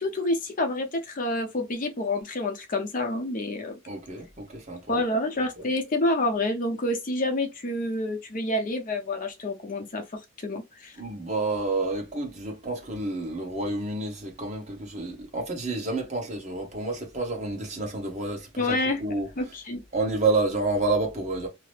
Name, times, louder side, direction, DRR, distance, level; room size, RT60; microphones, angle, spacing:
voice 1, 0.0-3.8 4.9-10.0 10.4-10.9 18.6-19.0 19.4-19.8, left 2 dB, 45° left, 0.7 m, -28 dB
voice 2, 3.9-5.0 5.6-5.7 11.0-19.3 19.9-21.5, right 2 dB, 35° right, 1.1 m, -29 dB
2.8 x 2.0 x 3.2 m
head